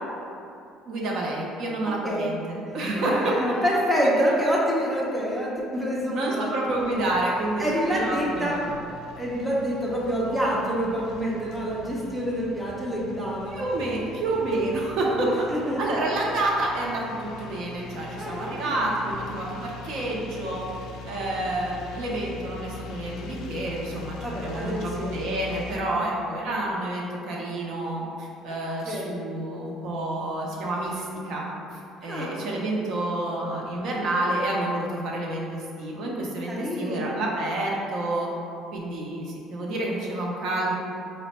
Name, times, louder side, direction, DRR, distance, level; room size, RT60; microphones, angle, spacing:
voice 1, 0.9-3.6 6.1-8.6 13.5-15.5 15.8-20.6 21.0-38.3 38.7-40.7, right 2 dB, 55° right, -3 dB, 0.6 m, -29 dB
voice 2, 2.9-6.5 7.6-8.6 9.2-13.5 15.2-15.8 18.2-18.9 24.2-25.2 25.9-26.1 28.9-29.1 32.1-32.5 36.5-37.2, equal, 5° right, -6 dB, 0.5 m, -27 dB
sound 1, 6.8-25.8, left 3 dB, 60° left, 0.3 m, -42 dB
4.1 x 2.1 x 4.1 m, 2.6 s
cardioid pair, 165°, 0 cm